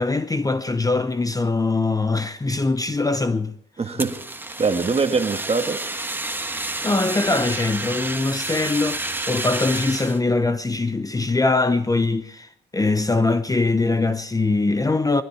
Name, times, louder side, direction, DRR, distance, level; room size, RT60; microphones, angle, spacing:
voice 1, 0.0-3.5 6.5-15.2, left 3 dB, 20° left, 0.8 m, -22 dB
voice 2, 3.8-5.9, right 4 dB, 30° right, 1.6 m, -23 dB
Fire, 4.0-10.2, right 2 dB, 10° right, 1.3 m, -29 dB
20.0 x 13.5 x 4.7 m
cardioid pair, 90°, 20 cm